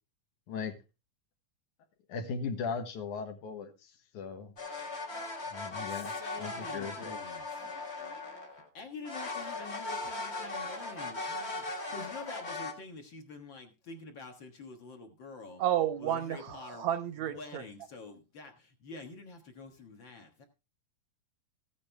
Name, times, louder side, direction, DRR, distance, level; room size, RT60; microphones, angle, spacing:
voice 1, 2.1-4.5 5.5-7.2, left 5 dB, 70° left, 5 dB, 2.8 m, -38 dB
sound 1, 4.6-8.7 9.0-12.7, left 3 dB, 30° left, 1.3 m, -38 dB
voice 2, 5.9-7.7 8.7-15.6 16.0-16.9 17.3-20.5, left 3 dB, 50° left, 4 dB, 1.7 m, -47 dB
voice 3, 15.6-17.6, right 11 dB, 75° right, 10 dB, 1.8 m, -31 dB
15.0 x 8.8 x 3.4 m, 0.28 s
omnidirectional pair, 3.7 m